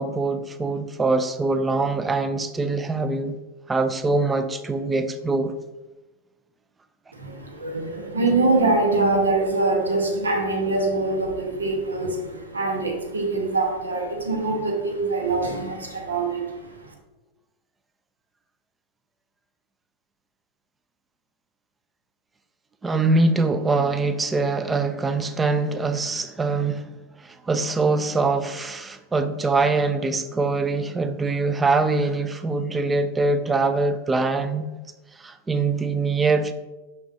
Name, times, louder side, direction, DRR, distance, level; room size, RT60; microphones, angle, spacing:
voice 1, 0.0-3.4 3.7-5.5 22.8-26.9 27.2-34.7 35.2-36.5, right 3 dB, 15° right, 0.5 m, -23 dB
voice 2, 7.1-16.6, right 3 dB, 75° right, 1.1 m, -24 dB
6.0 x 5.9 x 2.7 m
figure-of-eight pair, 90°, 0 cm